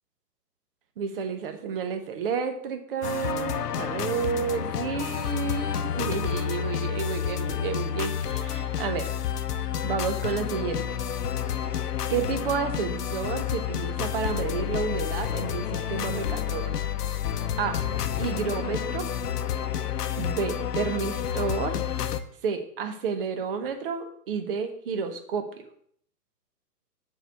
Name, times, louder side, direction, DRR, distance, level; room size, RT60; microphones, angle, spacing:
voice 1, 1.0-9.1 9.8-10.9 11.5-11.7 12.1-16.8 17.6-17.8 18.2-19.1 20.1-21.8 22.4-25.6, right 6 dB, 35° right, 7 dB, 1.1 m, -31 dB
sound 1, 3.0-22.2, left 9 dB, 65° left, 0.9 m, -30 dB
7.9 x 4.8 x 6.7 m, 0.63 s
hypercardioid pair, 155°, 50 cm